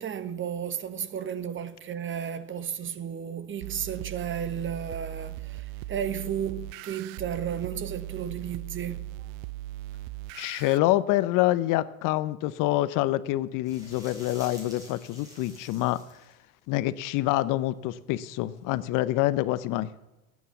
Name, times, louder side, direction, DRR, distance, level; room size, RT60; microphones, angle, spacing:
voice 1, 0.0-9.3, right 8 dB, 30° right, 1.2 m, -33 dB
sound 1, 3.6-10.8, right 15 dB, 70° right, 0.6 m, -39 dB
voice 2, 10.3-16.0 16.7-19.9, left 16 dB, 50° left, 0.8 m, -26 dB
sound 2, 13.6-16.3 18.6-18.7, left 1 dB, 10° right, 7.5 m, -48 dB
18.5 x 9.4 x 7.1 m
supercardioid pair, 115°, 42 cm